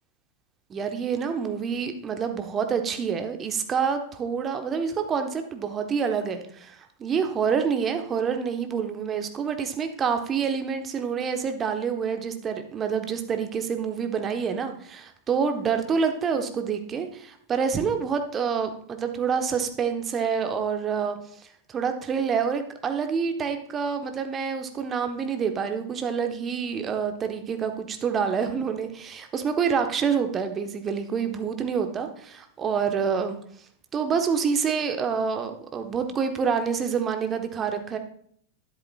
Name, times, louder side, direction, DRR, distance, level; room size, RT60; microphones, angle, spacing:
voice 1, 0.7-21.2 21.7-33.4 33.9-38.0, right 6 dB, 25° right, 6 dB, 1.1 m, -27 dB
12.0 x 10.0 x 2.4 m, 0.63 s
figure-of-eight pair, 90°, 0 cm